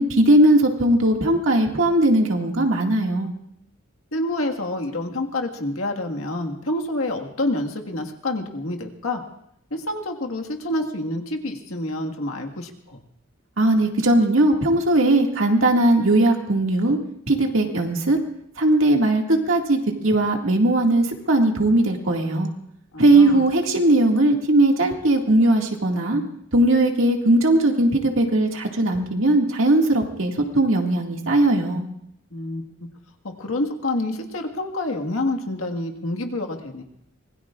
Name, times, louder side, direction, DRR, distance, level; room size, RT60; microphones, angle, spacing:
voice 1, 0.0-3.3 13.6-17.0 17.3-18.2 18.6-22.5 23.0-26.2 26.5-31.8, right 1 dB, 70° right, 2 dB, 2.1 m, -19 dB
voice 2, 4.1-9.2 9.7-13.0 22.9-23.4 32.3-32.9 33.2-36.8, left 1 dB, 80° left, 3 dB, 1.7 m, -28 dB
25.5 x 21.0 x 2.5 m, 0.74 s
head